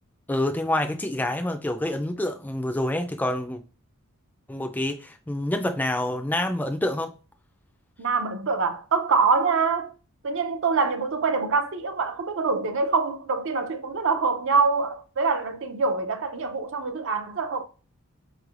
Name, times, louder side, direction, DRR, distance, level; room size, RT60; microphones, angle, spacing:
voice 1, 0.3-3.6 4.5-7.1, left 1 dB, 10° left, 0.3 m, -27 dB
voice 2, 8.0-9.9 10.2-17.6, right 4 dB, 60° right, 0.6 m, -25 dB
5.3 x 3.1 x 2.4 m
head